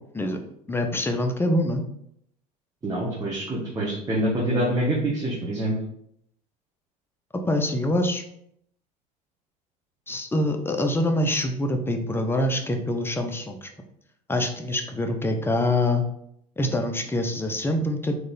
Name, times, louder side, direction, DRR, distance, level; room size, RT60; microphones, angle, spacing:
voice 1, 0.7-1.8 7.5-8.2 10.1-13.7 14.3-16.0 16.6-18.2, left 1 dB, 10° left, 5 dB, 0.7 m, -25 dB
voice 2, 2.8-5.8, right 1 dB, 20° right, -5 dB, 1.2 m, -26 dB
4.0 x 3.1 x 4.0 m, 0.73 s
hypercardioid pair, 80°, 20 cm